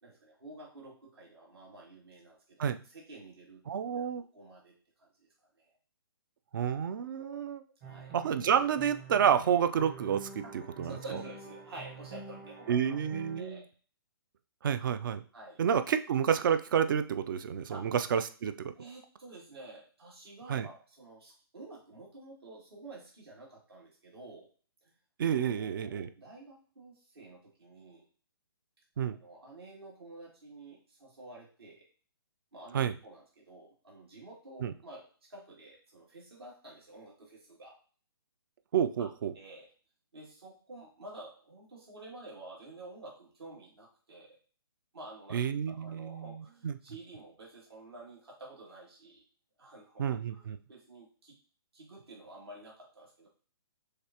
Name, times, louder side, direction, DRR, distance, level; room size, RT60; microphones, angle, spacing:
voice 1, 0.0-2.6 2.9-3.8 4.3-4.7 5.0-5.3 5.6-5.7 7.2-7.4 7.8-8.1 10.4-10.5 10.8-13.0 13.3-13.6 15.3-15.6 17.7-17.8 18.7-24.5 25.3-28.1 29.2-31.8 32.5-37.7 39.0-39.1 39.3-39.7 40.1-44.4 44.9-45.4 45.7-49.2 49.6-50.0 50.3-51.4 51.7-53.3, right 2 dB, 75° right, -3 dB, 2.3 m, -50 dB
voice 2, 3.7-4.2 6.5-7.6 8.1-10.9 12.7-13.6 14.6-15.2 15.6-18.7 20.5-20.7 25.2-26.1 29.0-29.2 32.7-32.9 34.6-34.7 38.7-39.3 45.3-46.7 50.0-50.6, right 8 dB, 55° right, 11 dB, 0.4 m, -29 dB
sound 1, 7.8-13.4, right 4 dB, 35° right, 1.0 m, -47 dB
6.5 x 2.5 x 2.9 m, 0.40 s
hypercardioid pair, 135°, 13 cm